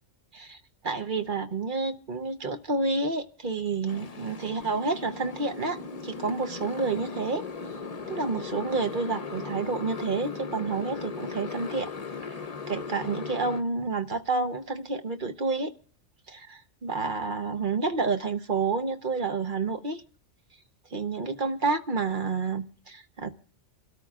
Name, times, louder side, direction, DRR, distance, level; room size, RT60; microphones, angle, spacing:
voice 1, 0.8-7.4 8.1-11.9 12.2-12.4 12.7-15.7 16.3-20.0 20.9-23.3, right 4 dB, 45° right, 1.0 m, -29 dB
Motorcycle, 3.9-13.6, left 4 dB, 35° left, 0.8 m, -38 dB
28.0 x 13.0 x 2.4 m
omnidirectional pair, 1.3 m